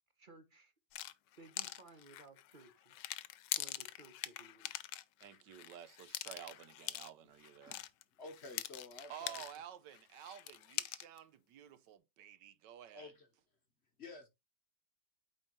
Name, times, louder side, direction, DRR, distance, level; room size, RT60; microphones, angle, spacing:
voice 1, 0.2-0.7 1.4-2.9 3.6-4.7, right 3 dB, 35° right, 1.0 m, -59 dB
sound 1, 0.9-9.7 9.9-11.2, left 14 dB, 80° left, 1.2 m, -44 dB
voice 2, 5.2-7.8 9.1-13.1, right 10 dB, 80° right, 1.3 m, -52 dB
voice 3, 8.2-9.3 12.9-13.3 14.0-14.3, left 3 dB, 45° left, 1.1 m, -51 dB
8.6 x 4.4 x 3.1 m
omnidirectional pair, 1.9 m